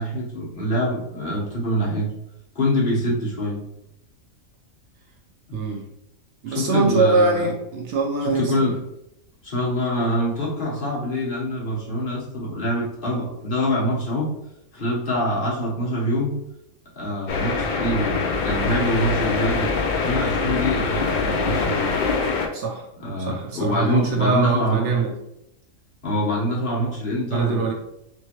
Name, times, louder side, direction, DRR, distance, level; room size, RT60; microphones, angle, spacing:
voice 1, 0.0-2.1 2.5-3.6 5.5-5.6 6.5-7.5 8.2-8.8 9.4-14.3 14.7-16.3 17.0-19.8 20.0-22.0 23.0-24.9 26.0-27.7, equal, 45° left, -6 dB, 1.2 m, -25 dB
voice 2, 5.5-5.8 6.4-8.6 22.5-22.8 23.2-25.1 27.3-27.7, right 3 dB, 65° right, 1 dB, 0.8 m, -22 dB
sound 1, 17.3-22.5, left 4 dB, 70° left, 0.4 m, -24 dB
3.3 x 3.0 x 2.9 m, 0.82 s
omnidirectional pair, 1.4 m